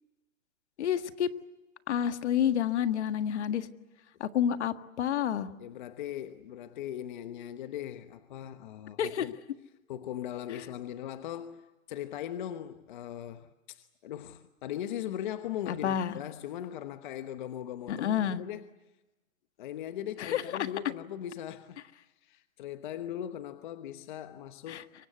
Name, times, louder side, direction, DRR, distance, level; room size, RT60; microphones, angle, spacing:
voice 1, 0.8-1.3 1.9-3.7 4.2-5.5 9.0-9.2 15.7-16.2 17.9-18.4 20.2-20.4 24.7-24.8, left 9 dB, 55° left, 1.8 m, -29 dB
voice 2, 5.6-9.4 9.9-18.7 19.6-24.9, left 11 dB, 35° left, 1.1 m, -39 dB
26.0 x 24.0 x 8.1 m
hypercardioid pair, 165°, 41 cm